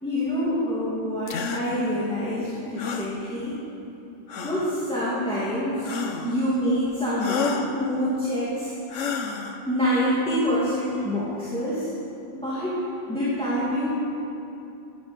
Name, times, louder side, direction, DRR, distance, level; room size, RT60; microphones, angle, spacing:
voice 1, 0.0-3.6 4.4-6.0 6.2-8.7 9.7-11.9 12.3-12.8 13.1-13.9, equal, 5° left, -9 dB, 2.3 m, -26 dB
sound 1, 1.3-1.6 2.8-3.1 4.3-4.7 5.9-6.4 7.2-7.7 8.9-9.6, left 5 dB, 80° left, 1.2 m, -30 dB
11.0 x 9.4 x 8.2 m, 2.8 s
omnidirectional pair, 1.2 m